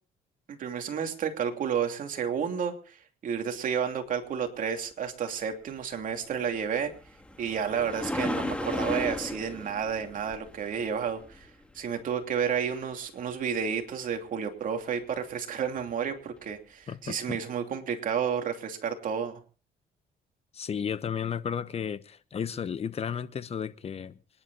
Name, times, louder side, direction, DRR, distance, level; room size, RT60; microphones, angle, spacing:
voice 1, 0.5-6.9 7.4-11.5 11.7-19.3, right 7 dB, 50° right, 2.9 m, -31 dB
sound 1, 6.6-11.9 15.8-15.9 16.5-16.6, left 1 dB, 5° left, 2.1 m, -35 dB
voice 2, 16.9-17.4 20.5-24.2, left 7 dB, 35° left, 1.0 m, -33 dB
26.0 x 11.0 x 4.0 m
cardioid pair, 110°, 17 cm